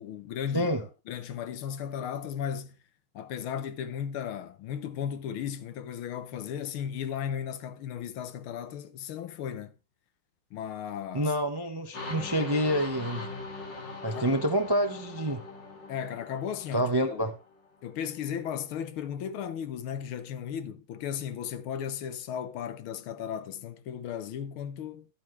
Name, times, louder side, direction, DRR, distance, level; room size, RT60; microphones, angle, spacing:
voice 1, 0.0-2.8 3.2-9.7 10.5-11.3 14.1-14.3 15.9-17.3 17.8-25.1, left 8 dB, 85° left, 1.7 m, -35 dB
voice 2, 11.1-13.3 14.0-15.4 16.7-17.3, equal, 25° right, 0.5 m, -27 dB
sound 1, 11.9-17.7, left 3 dB, 60° left, 3.2 m, -41 dB
12.5 x 8.5 x 3.2 m
omnidirectional pair, 2.3 m